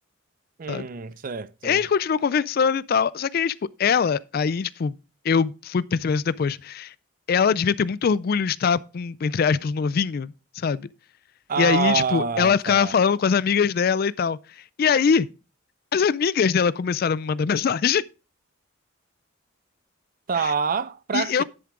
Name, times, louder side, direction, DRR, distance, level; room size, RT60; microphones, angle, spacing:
voice 1, 0.6-1.9 11.5-13.0 20.3-21.4, right 5 dB, 45° right, 0.5 m, -26 dB
voice 2, 1.6-3.5 3.8-4.9 5.2-6.9 7.3-10.9 11.6-14.4 14.8-15.3 15.9-18.0 21.1-21.4, left 6 dB, 50° left, 0.3 m, -22 dB
10.5 x 7.0 x 3.7 m
head